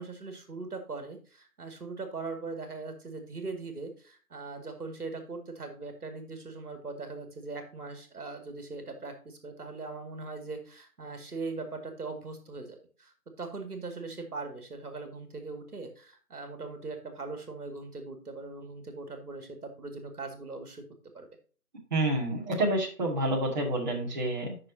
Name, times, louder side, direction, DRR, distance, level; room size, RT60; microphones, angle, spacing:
voice 1, 0.0-20.8 21.1-21.3, right 3 dB, 70° right, 5 dB, 2.3 m, -40 dB
voice 2, 21.9-24.6, right 1 dB, 30° right, -4 dB, 2.2 m, -28 dB
10.5 x 6.4 x 2.7 m, 0.39 s
figure-of-eight pair, 165°, 47 cm